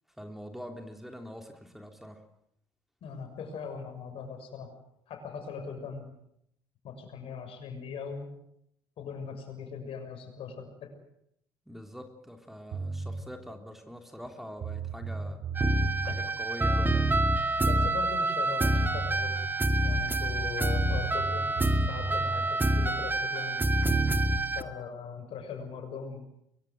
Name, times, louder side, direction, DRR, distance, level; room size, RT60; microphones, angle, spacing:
voice 1, 0.2-2.2 11.7-15.4 16.0-17.1, equal, ahead, 4 dB, 3.4 m, -44 dB
voice 2, 3.0-4.7 5.1-6.1 6.8-8.3 9.0-10.9 16.1-16.2 17.6-19.4 19.8-21.5 21.9-23.6 24.5-26.2, left 6 dB, 60° left, 6 dB, 6.6 m, -40 dB
sound 1, 12.7-13.2 14.2-14.3 14.6-16.3 18.5-18.6 18.8-19.5 20.7-22.5, right 5 dB, 55° right, 2.5 m, -35 dB
sound 2, 15.5-24.6, right 1 dB, 20° right, 2.2 m, -27 dB
23.5 x 23.0 x 7.9 m, 0.77 s
hypercardioid pair, 55°, 11 cm